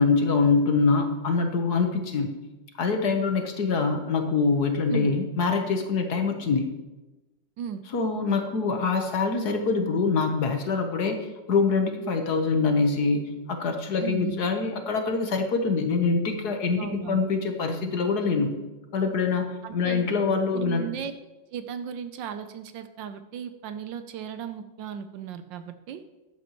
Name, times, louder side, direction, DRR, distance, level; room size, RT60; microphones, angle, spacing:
voice 1, 0.0-2.3 2.8-6.7 7.9-18.5 18.9-20.8, left 4 dB, 55° left, 5 dB, 1.5 m, -24 dB
voice 2, 14.0-14.4 16.8-17.2 19.6-20.0 20.5-21.1 21.5-26.0, right 8 dB, 75° right, 10 dB, 1.3 m, -35 dB
13.5 x 10.5 x 3.0 m, 1.1 s
omnidirectional pair, 2.1 m